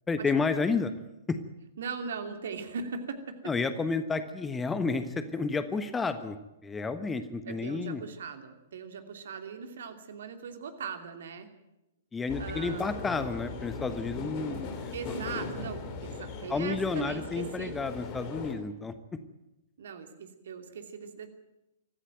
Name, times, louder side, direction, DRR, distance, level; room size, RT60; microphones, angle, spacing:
voice 1, 0.1-0.9 1.3-1.4 3.4-6.4 6.6-8.0 12.1-14.9 16.5-19.2, left 4 dB, 10° left, 11 dB, 1.3 m, -31 dB
voice 2, 1.8-3.5 7.5-11.5 12.4-12.9 14.9-17.7 19.8-21.3, right 5 dB, 55° right, 7 dB, 2.7 m, -39 dB
sound 1, 12.3-18.5, left 4 dB, 35° left, 3.7 m, -39 dB
24.0 x 15.0 x 9.2 m, 0.95 s
figure-of-eight pair, 110°, 0 cm